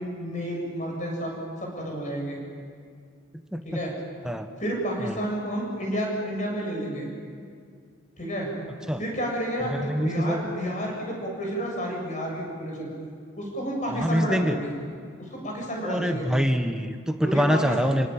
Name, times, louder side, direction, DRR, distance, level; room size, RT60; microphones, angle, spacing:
voice 1, 0.0-2.4 3.6-3.9 4.6-7.1 8.2-8.5 9.0-12.9 13.4-14.7 15.2-16.3 17.2-17.7, equal, 35° left, 0 dB, 7.7 m, -30 dB
voice 2, 9.8-10.4 13.9-14.6 15.8-18.1, equal, 5° right, 6 dB, 1.1 m, -25 dB
30.0 x 18.0 x 9.4 m, 2.2 s
head